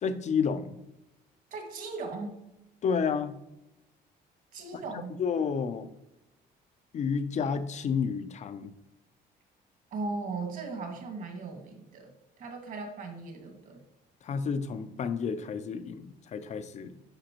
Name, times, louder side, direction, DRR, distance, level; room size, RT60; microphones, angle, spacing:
voice 1, 0.0-0.8 2.8-3.3 4.7-4.8 5.2-5.9 6.9-8.7 14.2-17.0, left 6 dB, 45° left, 12 dB, 0.6 m, -30 dB
voice 2, 1.5-2.4 4.5-5.1 9.9-12.1 12.4-13.8, right 3 dB, 55° right, 2 dB, 2.0 m, -37 dB
10.0 x 5.1 x 3.0 m, 0.91 s
cardioid pair, 110°, 17 cm